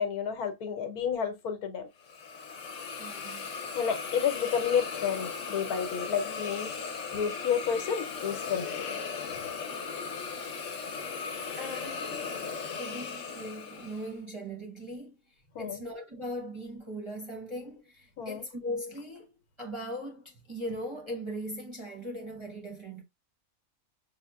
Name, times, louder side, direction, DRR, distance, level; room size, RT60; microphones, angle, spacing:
voice 1, 0.0-1.9 3.7-6.7 7.1-8.9 15.5-15.8 18.2-18.4, left 7 dB, 85° left, 1.3 m, -30 dB
Hiss, 2.0-14.1, left 5 dB, 60° left, 1.1 m, -37 dB
voice 2, 3.0-3.5 10.0-10.2 10.8-15.1 15.6-23.0, equal, 30° right, 0.6 m, -40 dB
5.7 x 2.1 x 2.3 m
omnidirectional pair, 1.5 m